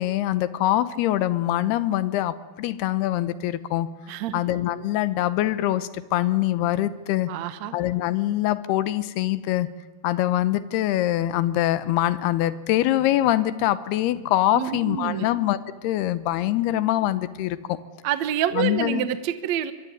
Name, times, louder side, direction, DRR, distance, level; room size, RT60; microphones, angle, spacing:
voice 1, 0.0-3.9 4.3-7.3 7.7-9.7 10.0-17.8 18.5-19.1, left 14 dB, 85° left, 15 dB, 3.0 m, -24 dB
voice 2, 4.1-4.4 7.3-7.7 14.5-15.3 18.0-19.7, right 10 dB, 65° right, 11 dB, 1.8 m, -27 dB
24.0 x 23.0 x 9.4 m, 1.3 s
omnidirectional pair, 4.5 m